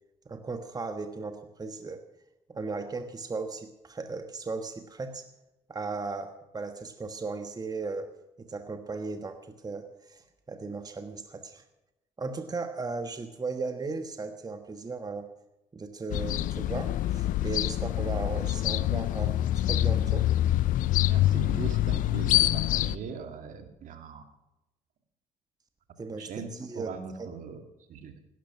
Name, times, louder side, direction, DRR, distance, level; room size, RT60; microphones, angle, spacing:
voice 1, 0.3-2.0 2.5-5.3 5.7-8.1 8.4-11.6 12.2-15.3 15.7-20.3 26.0-27.3, right 3 dB, 25° right, 7 dB, 1.4 m, -36 dB
sound 1, 16.1-23.0, left 14 dB, 65° left, 0.5 m, -26 dB
voice 2, 21.0-24.2 26.2-27.6 27.9-28.1, right 6 dB, 60° right, 6 dB, 2.2 m, -40 dB
17.0 x 12.5 x 6.0 m, 0.96 s
hypercardioid pair, 60°, 15 cm